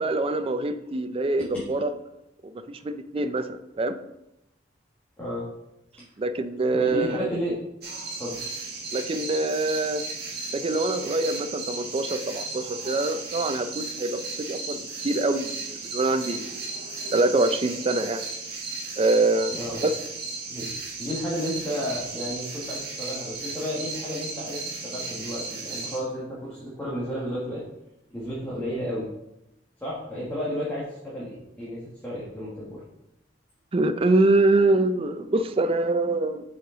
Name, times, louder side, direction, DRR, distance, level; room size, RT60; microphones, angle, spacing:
voice 1, 0.0-1.9 2.7-4.0 6.2-7.3 8.9-10.0 10.5-14.2 14.5-16.6 17.1-18.2 19.0-19.6 19.8-19.9 33.7-36.4, right 2 dB, 30° right, 10 dB, 0.4 m, -24 dB
voice 2, 5.2-5.5 6.7-7.5 8.2-8.3 19.5-19.8 20.5-20.7 21.0-27.6 28.1-29.1 29.8-32.8, equal, 10° left, -8 dB, 1.6 m, -32 dB
sound 1, 7.8-26.0, right 3 dB, 55° right, 1.5 m, -35 dB
6.9 x 5.0 x 3.8 m, 0.86 s
head